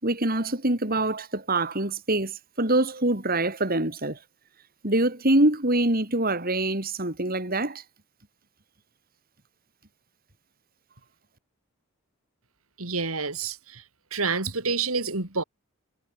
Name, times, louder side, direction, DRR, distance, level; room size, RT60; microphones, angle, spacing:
voice 1, 0.0-4.2 4.8-7.8, right 1 dB, 45° right, 4.5 m, -25 dB
voice 2, 12.8-13.8 14.1-15.4, right 4 dB, 85° right, 3.9 m, -28 dB
head